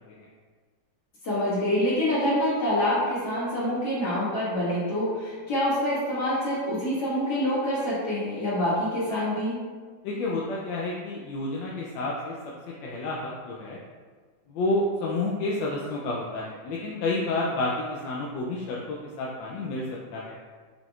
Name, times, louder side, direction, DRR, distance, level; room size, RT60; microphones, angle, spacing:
voice 1, 1.2-9.6, left 1 dB, 60° left, -9 dB, 2.3 m, -26 dB
voice 2, 10.0-12.3 12.8-13.8 14.5-19.8 20.1-20.4, left 2 dB, 85° left, -4 dB, 1.3 m, -30 dB
5.6 x 3.7 x 2.4 m, 1.5 s
omnidirectional pair, 2.0 m